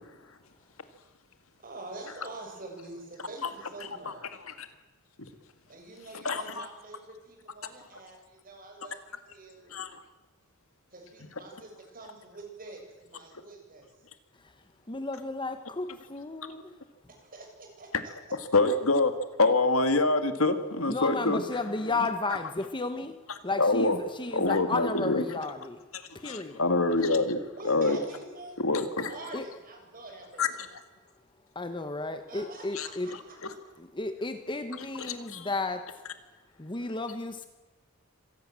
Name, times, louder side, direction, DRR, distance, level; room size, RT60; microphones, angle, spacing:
voice 1, 1.6-4.2 5.7-9.8 10.9-13.9 17.1-17.9 27.0-27.1 27.6-28.5 29.1-30.4 32.3-33.1, right 2 dB, 40° right, 2 dB, 6.8 m, -46 dB
voice 2, 3.2-3.5 3.8-4.7 5.2-5.3 6.1-6.7 7.6-7.9 9.7-10.0 11.3-11.4 17.9-18.0 18.3-21.4 22.0-22.4 23.6-24.0 24.3-25.4 25.9-28.0 28.6-29.4 30.4-30.8 32.7-32.9 33.4-33.5 35.0-35.5, left 3 dB, 70° left, 10 dB, 2.0 m, -27 dB
voice 3, 14.3-16.7 20.9-25.8 26.1-26.6 29.3-29.5 31.5-33.1 33.8-36.0 36.6-37.4, left 3 dB, 20° left, 9 dB, 1.1 m, -33 dB
26.0 x 18.5 x 7.6 m, 1.3 s
head